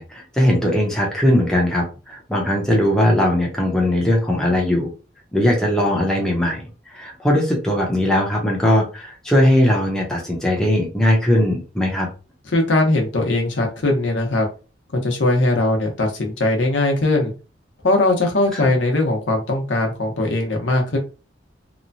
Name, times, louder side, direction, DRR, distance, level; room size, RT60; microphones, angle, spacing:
voice 1, 0.0-4.9 5.3-12.1 18.5-18.7, left 1 dB, 5° left, -1 dB, 0.7 m, -19 dB
voice 2, 12.5-14.5 14.9-17.3 17.8-21.0, left 2 dB, 85° left, 2 dB, 0.8 m, -20 dB
2.9 x 2.2 x 2.6 m, 0.33 s
head